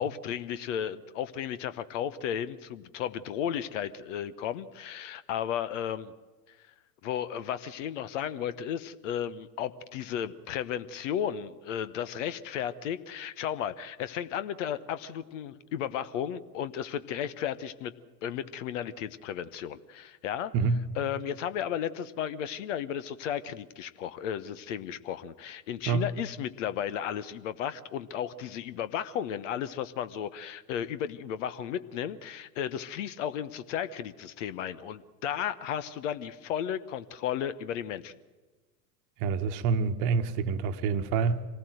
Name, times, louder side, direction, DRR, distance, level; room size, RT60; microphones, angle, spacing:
voice 1, 0.0-6.1 6.5-6.6 7.0-17.9 18.2-20.5 21.0-38.1, left 9 dB, 50° left, 1.1 m, -34 dB
voice 2, 39.2-41.4, right 5 dB, 40° right, 1.4 m, -27 dB
25.5 x 18.5 x 7.7 m
figure-of-eight pair, 85°, 48 cm